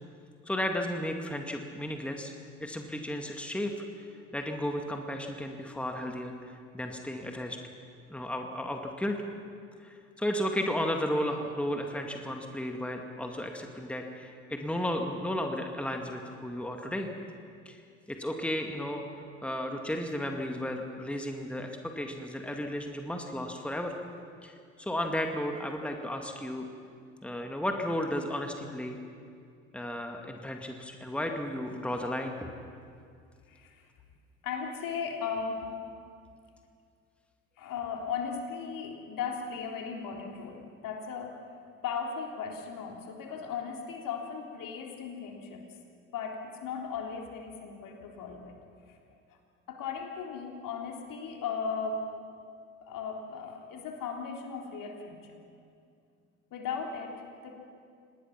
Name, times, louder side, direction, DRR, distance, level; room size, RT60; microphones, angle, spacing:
voice 1, 0.5-2.3 2.6-3.7 4.3-7.6 8.1-9.2 9.8-17.1 17.7-17.8 18.1-19.0 19.4-23.9 24.4-26.6 27.2-29.0 29.7-32.5, left 1 dB, 5° left, 3 dB, 2.1 m, -34 dB
voice 2, 33.5-33.9 34.4-35.7 37.6-45.7 46.1-48.6 48.9-49.0 49.7-52.1 52.8-55.4 56.5-57.5, left 6 dB, 55° left, 2 dB, 3.5 m, -37 dB
26.5 x 19.5 x 5.9 m, 2.4 s
hypercardioid pair, 65°, 40 cm